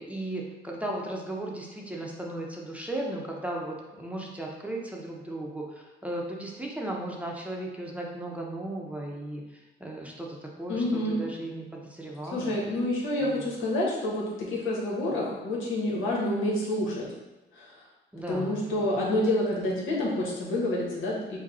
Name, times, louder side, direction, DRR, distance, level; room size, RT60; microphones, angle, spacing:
voice 1, 0.0-10.3 10.6-12.5 13.2-13.4 18.1-18.9, right 1 dB, 5° right, -2 dB, 0.7 m, -36 dB
voice 2, 10.7-11.2 12.3-17.1 17.5-17.7 18.3-21.4, left 1 dB, 85° left, -4 dB, 1.3 m, -28 dB
5.0 x 2.3 x 4.2 m, 1.0 s
cardioid pair, 90°, 20 cm